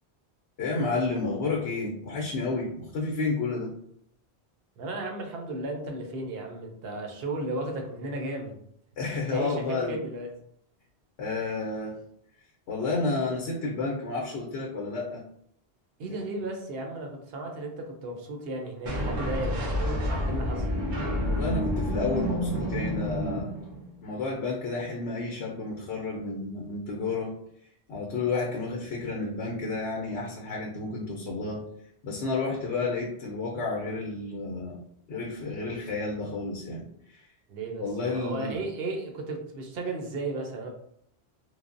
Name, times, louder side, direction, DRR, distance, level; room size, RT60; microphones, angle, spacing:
voice 1, 0.6-3.7 9.0-10.0 11.2-12.0 12.7-15.2 21.2-23.5 24.0-27.3 27.9-31.6 32.0-34.8 35.1-37.3 37.8-38.6, left 3 dB, 80° left, -1 dB, 0.9 m, -31 dB
voice 2, 4.8-8.6 9.3-10.3 16.0-20.7 37.5-40.7, right 2 dB, 65° right, 2 dB, 0.8 m, -35 dB
sound 1, 18.9-24.0, equal, 90° right, 1.0 m, -29 dB
3.2 x 2.0 x 2.5 m, 0.70 s
omnidirectional pair, 1.1 m